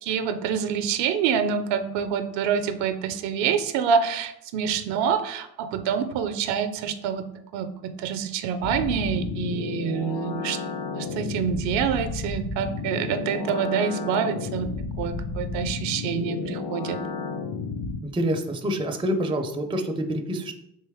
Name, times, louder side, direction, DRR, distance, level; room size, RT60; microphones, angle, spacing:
voice 1, 0.0-10.6 10.9-14.7 15.0-17.0, right 7 dB, 65° right, 10 dB, 0.5 m, -26 dB
sound 1, 8.6-18.0, left 4 dB, 45° left, 0.6 m, -32 dB
voice 2, 18.0-20.5, equal, 10° right, 5 dB, 0.4 m, -27 dB
3.3 x 3.0 x 3.4 m, 0.83 s
hypercardioid pair, 65°, 48 cm